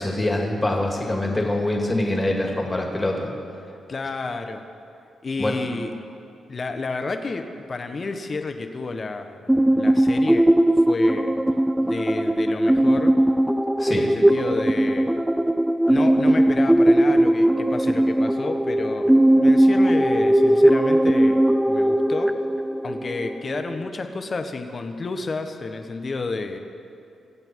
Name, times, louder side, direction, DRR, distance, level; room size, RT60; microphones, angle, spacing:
voice 1, 0.0-3.3 5.4-5.5 13.8-14.1, left 1 dB, 20° left, 1 dB, 2.4 m, -24 dB
voice 2, 3.9-4.6 5.2-5.9 6.5-10.5 10.9-11.3 11.8-13.1 13.9-15.2 15.9-19.1 19.4-22.4 22.8-26.6, left 3 dB, 45° left, 7 dB, 1.2 m, -30 dB
sound 1, 9.5-23.9, right 1 dB, 10° right, 0.4 m, -19 dB
23.0 x 7.9 x 4.7 m, 2.5 s
cardioid pair, 65°, 0 cm